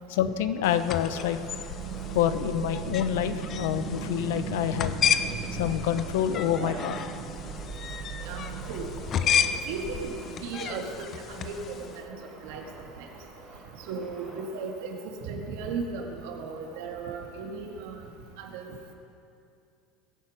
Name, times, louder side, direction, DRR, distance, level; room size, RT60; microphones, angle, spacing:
voice 1, 0.1-1.4 2.1-7.0, left 10 dB, 85° left, 11 dB, 0.8 m, -27 dB
sound 1, 0.6-12.0, left 8 dB, 30° left, 0.5 m, -32 dB
Male speech man speaking, 0.7-14.4, right 1 dB, 5° right, 4.1 m, -48 dB
sound 2, 1.3-12.6, right 8 dB, 50° right, 0.9 m, -39 dB
voice 2, 6.6-6.9 8.2-8.9 9.1-10.1 10.4-11.8 12.0-12.2 12.4-12.6 13.0-13.1 13.9-18.0 18.4-18.7, right 4 dB, 75° right, 2 dB, 2.0 m, -36 dB
21.0 x 8.7 x 5.1 m, 2.6 s
cardioid pair, 165°, 0 cm